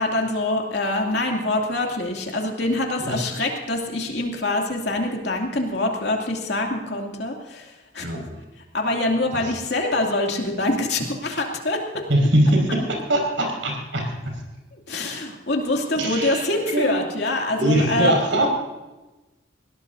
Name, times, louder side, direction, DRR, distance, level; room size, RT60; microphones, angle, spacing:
voice 1, 0.0-8.1 8.7-12.0 14.7-18.1, left 2 dB, 60° left, 1 dB, 2.7 m, -25 dB
voice 2, 12.1-14.3 15.9-17.1 17.6-18.5, right 1 dB, 85° right, 1 dB, 5.5 m, -22 dB
21.0 x 17.5 x 2.7 m, 1.1 s
head